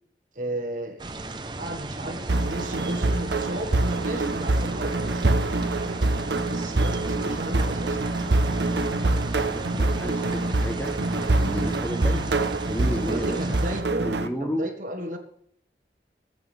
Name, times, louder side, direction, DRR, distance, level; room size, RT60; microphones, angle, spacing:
voice 1, 0.3-1.1 1.6-6.0 6.5-8.0 13.0-14.1 14.4-15.2, right 1 dB, 45° right, 4 dB, 1.6 m, -34 dB
sound 1, 1.0-13.8, right 2 dB, 25° right, 0.9 m, -36 dB
sound 2, 2.3-14.3, right 2 dB, 85° right, 1.0 m, -25 dB
voice 2, 9.3-11.0 11.2-12.3 12.7-13.6 14.0-14.6, equal, 10° left, 5 dB, 1.1 m, -32 dB
21.0 x 8.2 x 3.5 m, 0.67 s
head